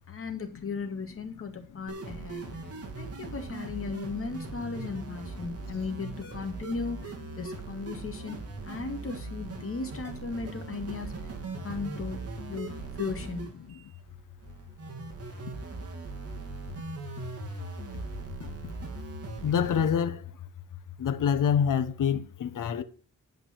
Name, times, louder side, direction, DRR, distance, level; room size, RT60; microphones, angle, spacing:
voice 1, 0.1-2.6 3.0-8.4 8.6-11.1 11.6-12.2 12.5-12.7 13.0-13.6, left 4 dB, 40° left, 2.5 m, -36 dB
voice 2, 1.7-2.9 3.2-3.3 4.8-4.9 5.4-5.8 7.9-8.0 9.6-9.7 12.7-12.8 18.6-18.7 19.4-20.4 21.0-22.8, left 8 dB, 70° left, 1.3 m, -29 dB
sound 1, 1.9-19.9, right 4 dB, 45° right, 2.6 m, -40 dB
11.5 x 5.2 x 7.6 m
wide cardioid pair, 135°, 33 cm